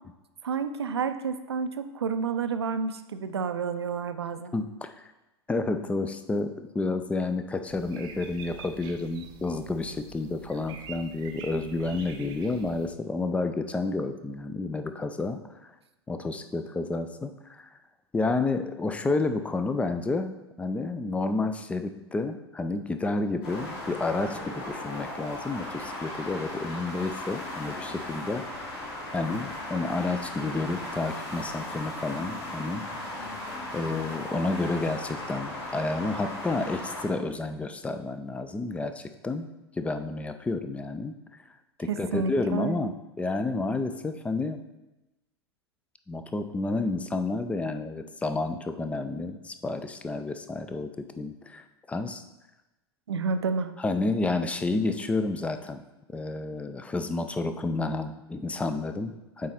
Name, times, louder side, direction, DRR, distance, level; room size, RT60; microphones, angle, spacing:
voice 1, 0.4-4.5 41.9-42.9 53.1-53.7, right 5 dB, 70° right, 10 dB, 0.5 m, -30 dB
voice 2, 4.5-5.1 5.5-15.7 16.1-17.7 18.1-28.7 29.1-32.8 33.7-39.5 39.8-41.1 41.8-44.6 46.1-52.2 53.8-55.8 56.1-59.5, left 3 dB, 10° left, 9 dB, 0.4 m, -30 dB
sound 1, 7.7-12.9, right 7 dB, 30° right, 0.8 m, -46 dB
sound 2, 23.4-37.0, left 1 dB, 40° left, 2.4 m, -37 dB
8.4 x 4.0 x 4.2 m, 1.0 s
figure-of-eight pair, 85°, 14 cm